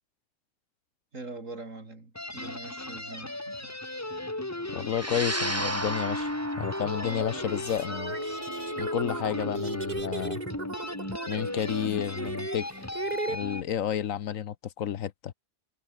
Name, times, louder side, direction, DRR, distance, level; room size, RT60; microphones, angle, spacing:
voice 1, 1.1-3.7, right 3 dB, 65° right, 4.2 m, -43 dB
sound 1, 2.1-13.6, left 1 dB, 10° left, 1.4 m, -36 dB
voice 2, 4.7-6.3 6.6-8.2 8.8-10.4 11.3-12.7 13.3-15.3, left 9 dB, 70° left, 1.2 m, -31 dB
sound 2, 4.9-13.5, right 1 dB, 10° right, 1.9 m, -37 dB
sound 3, 6.2-6.3 7.0-13.4, right 3 dB, 30° right, 2.1 m, -37 dB
omnidirectional pair, 1.5 m